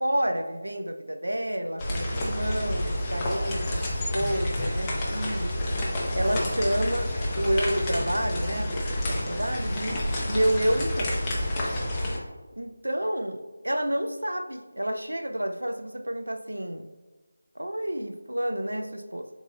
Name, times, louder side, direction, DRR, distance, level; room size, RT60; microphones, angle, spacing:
voice 1, 0.0-5.5 6.1-7.1 7.4-10.0 10.3-11.3 12.6-16.8 17.6-19.3, right 1 dB, 85° right, 6 dB, 0.5 m, -29 dB
sound 1, 1.8-12.2, left 1 dB, 15° left, 0.7 m, -29 dB
5.4 x 4.0 x 2.2 m, 1.3 s
figure-of-eight pair, 165°, 0 cm